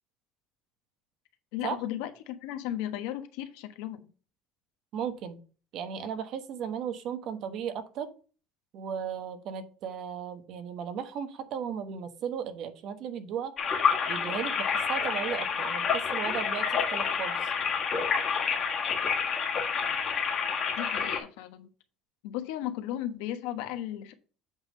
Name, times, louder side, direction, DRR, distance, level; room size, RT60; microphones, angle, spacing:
voice 1, 1.5-4.1 20.8-21.7 22.2-24.1, left 12 dB, 85° left, 8 dB, 1.2 m, -35 dB
voice 2, 4.9-5.4 5.7-8.1 8.7-13.5 14.1-17.5, right 8 dB, 50° right, 9 dB, 1.2 m, -36 dB
sound 1, 13.6-21.2, left 6 dB, 35° left, 1.6 m, -28 dB
8.0 x 3.6 x 6.5 m, 0.37 s
cardioid pair, 155°, 0 cm